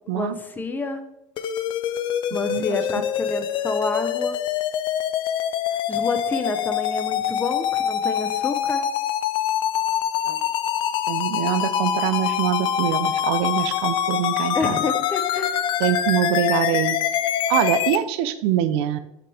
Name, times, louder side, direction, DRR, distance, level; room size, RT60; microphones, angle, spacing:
voice 1, 0.1-1.0 2.3-4.3 5.9-8.8 14.5-15.6, left 3 dB, 15° left, 8 dB, 0.8 m, -28 dB
sound 1, 1.4-18.0, left 10 dB, 35° left, 0.4 m, -25 dB
voice 2, 11.1-14.8 15.8-17.0 17.5-19.0, right 11 dB, 70° right, 12 dB, 0.7 m, -24 dB
8.3 x 6.4 x 3.5 m, 0.85 s
supercardioid pair, 150°, 14 cm